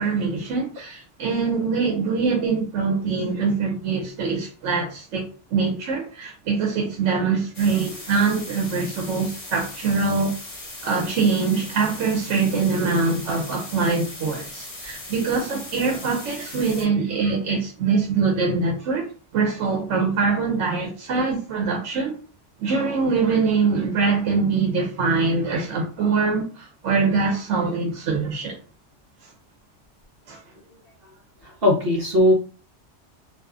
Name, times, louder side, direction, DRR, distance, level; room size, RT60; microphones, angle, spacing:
voice 1, 0.0-10.3 10.8-22.2 22.6-28.6 29.2-29.3 30.3-30.4, right 4 dB, 85° right, 1.0 m, -23 dB
sound 1, 7.5-16.9, left 2 dB, 35° left, 0.8 m, -38 dB
voice 2, 31.4-32.3, left 1 dB, 55° right, 1.0 m, -19 dB
2.7 x 2.3 x 2.3 m
omnidirectional pair, 1.2 m